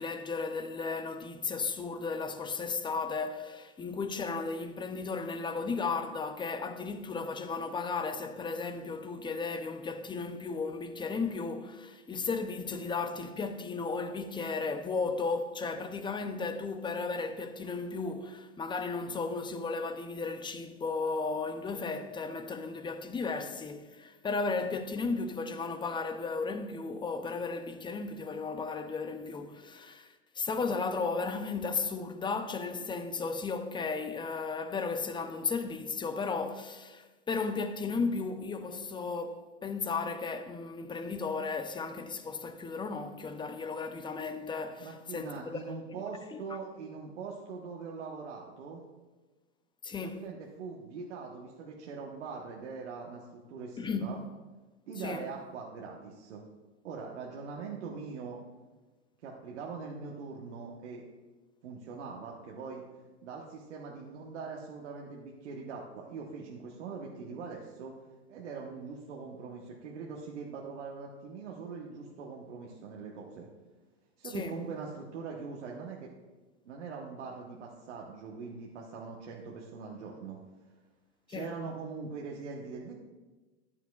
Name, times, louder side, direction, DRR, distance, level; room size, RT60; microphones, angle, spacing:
voice 1, 0.0-30.1 30.4-45.6 45.9-46.0 46.3-46.4 49.8-50.2 53.8-54.1 55.0-55.3 74.3-74.6 81.3-81.5, left 4 dB, 15° left, 0.5 m, -35 dB
voice 2, 44.8-48.8 50.0-54.2 54.9-56.4 56.8-58.4 59.2-61.0 61.6-62.8 63.2-67.9 68.3-73.5 74.2-76.1 76.6-80.4 81.3-82.9, right 5 dB, 80° right, 1.2 m, -42 dB
13.5 x 9.1 x 2.4 m
hypercardioid pair, 105°, 35 cm